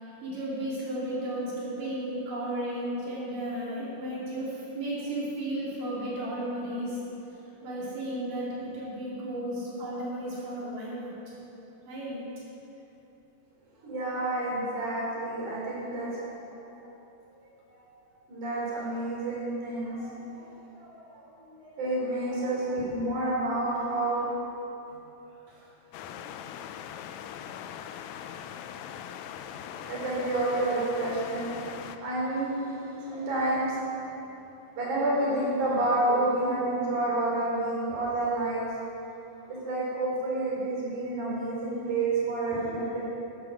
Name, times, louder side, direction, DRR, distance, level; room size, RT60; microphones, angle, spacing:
voice 1, 0.2-7.0 7.6-11.5 11.9-12.2 25.5-25.7, right 1 dB, 85° right, -6 dB, 5.0 m, -34 dB
voice 2, 13.8-16.2 17.7-17.8 18.3-20.5 20.8-21.3 21.8-24.4 29.8-32.7 33.1-34.1 34.8-38.6 39.5-43.1, right 2 dB, 70° right, -6 dB, 5.4 m, -29 dB
sound 1, 25.9-32.0, left 9 dB, 80° left, 1.7 m, -41 dB
13.5 x 11.5 x 6.3 m, 3.0 s
omnidirectional pair, 3.6 m